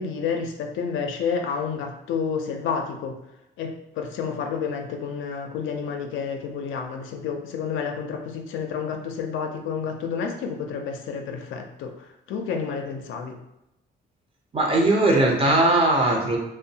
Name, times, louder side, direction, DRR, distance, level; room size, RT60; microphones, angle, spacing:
voice 1, 0.0-3.2 3.6-11.9 12.3-13.4, left 6 dB, 85° left, 3 dB, 0.4 m, -30 dB
voice 2, 14.5-16.4, right 2 dB, 30° right, 0 dB, 0.7 m, -19 dB
2.5 x 2.1 x 2.7 m, 0.89 s
cardioid pair, 90°, 20 cm